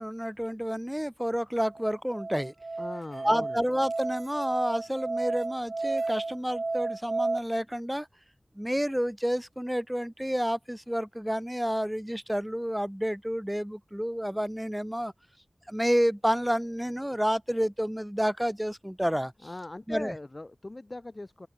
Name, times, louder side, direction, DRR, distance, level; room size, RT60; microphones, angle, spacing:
voice 1, 0.0-2.5 3.2-8.1 8.6-15.1 15.7-19.3 19.9-20.1, equal, 5° right, 0.9 m, -29 dB
Musical instrument, 1.7-7.4, right 3 dB, 65° right, 0.7 m, -32 dB
voice 2, 2.8-3.6 19.4-21.5, left 2 dB, 40° left, 1.1 m, -40 dB
open air
wide cardioid pair, 45°, 0 cm